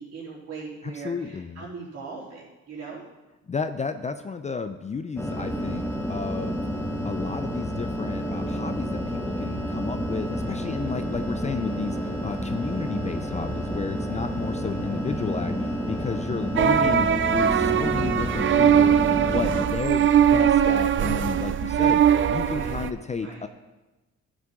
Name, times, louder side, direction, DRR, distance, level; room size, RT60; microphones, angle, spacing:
voice 1, 0.0-3.0 22.4-22.9 23.2-23.5, right 4 dB, 55° right, -4 dB, 3.5 m, -39 dB
voice 2, 0.8-1.7 3.5-6.6 7.0-23.5, left 5 dB, 25° left, 9 dB, 0.4 m, -32 dB
sound 1, 5.2-19.7, equal, 10° left, 1.2 m, -30 dB
sound 2, 16.6-22.9, right 9 dB, 40° right, 0.5 m, -21 dB
11.5 x 7.4 x 3.7 m, 1.1 s
cardioid pair, 90°, 30 cm